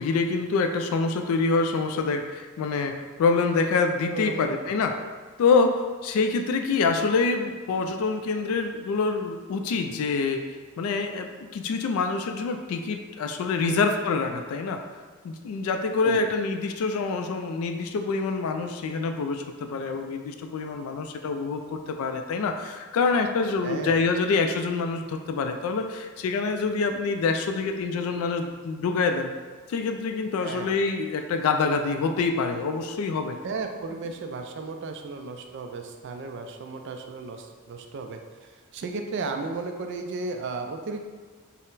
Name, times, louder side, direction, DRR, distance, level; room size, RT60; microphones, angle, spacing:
voice 1, 0.0-2.9 3.2-4.9 5.4-10.4 10.8-14.8 15.2-29.3 29.7-33.4, left 4 dB, 75° left, 6 dB, 0.3 m, -26 dB
voice 2, 4.1-4.7 13.6-13.8 16.0-16.2 23.6-24.0 30.4-30.7 33.4-41.1, right 3 dB, 55° right, 5 dB, 0.3 m, -35 dB
4.0 x 2.0 x 3.9 m, 1.4 s
head